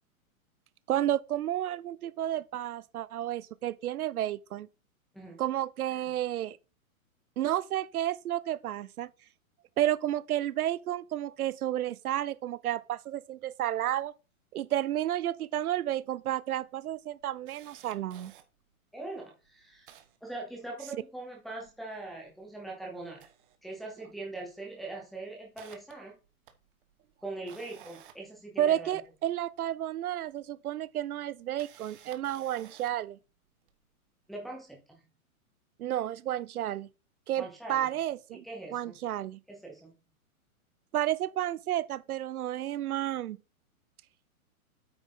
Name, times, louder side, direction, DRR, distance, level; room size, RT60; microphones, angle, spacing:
voice 1, 0.9-4.7 5.4-6.6 7.4-9.1 9.8-14.1 14.5-18.3 28.6-33.2 35.8-36.9 37.3-38.4 38.7-39.4 40.9-43.4, right 12 dB, 80° right, 0.7 m, -31 dB
Camera, 15.8-15.9 16.2-16.3 16.8-18.4 19.1-19.2 19.4-21.0 21.4-22.6 23.0-24.2 24.5-24.7 25.1-29.2 30.3-30.4 31.3-33.1 33.7-33.8, right 10 dB, 35° right, 1.0 m, -55 dB
voice 2, 18.9-19.9 20.2-23.3 23.6-26.2 27.2-29.0 34.3-35.1 37.4-37.9 38.3-39.0 39.5-39.9, right 2 dB, ahead, 0.6 m, -42 dB
8.8 x 6.1 x 3.7 m
hypercardioid pair, 165°, 43 cm